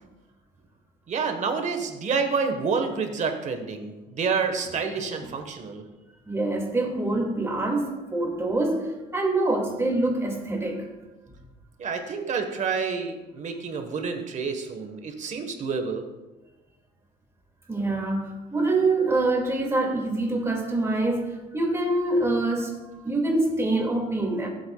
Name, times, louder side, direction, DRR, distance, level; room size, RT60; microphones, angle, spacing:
voice 1, 1.1-5.8 11.8-16.0, right 5 dB, 45° right, 6 dB, 1.4 m, -28 dB
voice 2, 6.3-10.9 17.7-22.8 23.0-24.5, right 2 dB, 15° right, 0 dB, 2.3 m, -25 dB
16.5 x 8.0 x 2.4 m, 1.1 s
cardioid pair, 110°, 17 cm